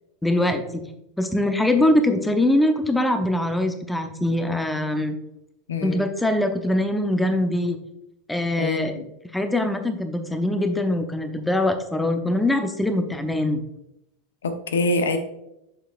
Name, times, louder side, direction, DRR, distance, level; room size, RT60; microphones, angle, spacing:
voice 1, 0.2-0.9 1.2-5.1 5.8-7.8 8.3-9.0 9.3-13.6, left 1 dB, 5° left, 7 dB, 0.8 m, -22 dB
voice 2, 5.7-6.0 8.6-9.1 14.4-15.2, left 2 dB, 70° left, 7 dB, 0.8 m, -25 dB
7.8 x 6.7 x 2.4 m, 0.85 s
figure-of-eight pair, 85°, 0 cm